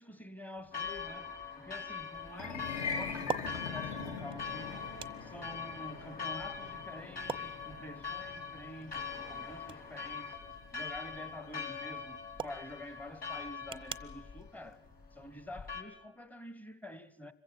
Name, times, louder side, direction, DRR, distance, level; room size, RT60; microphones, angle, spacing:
voice 1, 0.0-4.9 5.2-10.4 10.7-14.8 15.1-17.3, left 1 dB, 5° left, 1.1 m, -48 dB
sound 1, 0.6-15.8, right 5 dB, 15° right, 0.7 m, -48 dB
Church bell, 0.7-15.8, left 6 dB, 30° left, 3.3 m, -43 dB
sound 2, 2.3-12.6, left 5 dB, 55° left, 3.1 m, -43 dB
25.5 x 15.5 x 7.7 m
hypercardioid pair, 95°, 31 cm